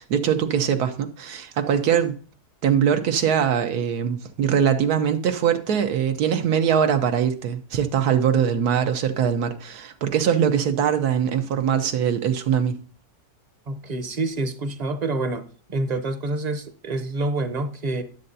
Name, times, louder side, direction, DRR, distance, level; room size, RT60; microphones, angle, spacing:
voice 1, 0.0-2.2 2.6-12.8, right 8 dB, 85° right, 1.4 m, -22 dB
voice 2, 13.7-18.0, right 2 dB, 35° right, 0.7 m, -27 dB
12.5 x 7.6 x 2.7 m
omnidirectional pair, 1.6 m